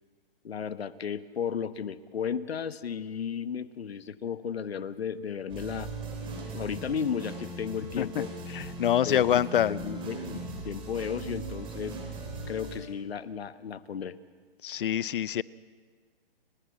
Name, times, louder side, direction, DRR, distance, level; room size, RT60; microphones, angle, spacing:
voice 1, 0.4-5.9 6.5-8.3 9.0-10.4 10.6-12.0 12.5-14.2, left 7 dB, 85° left, 14 dB, 1.1 m, -34 dB
sound 1, 5.5-12.8, right 2 dB, 15° right, 3.4 m, -39 dB
voice 2, 8.8-9.7 14.6-15.4, left 10 dB, 60° left, 20 dB, 0.7 m, -25 dB
30.0 x 11.0 x 8.5 m, 1.5 s
hypercardioid pair, 150°, 30 cm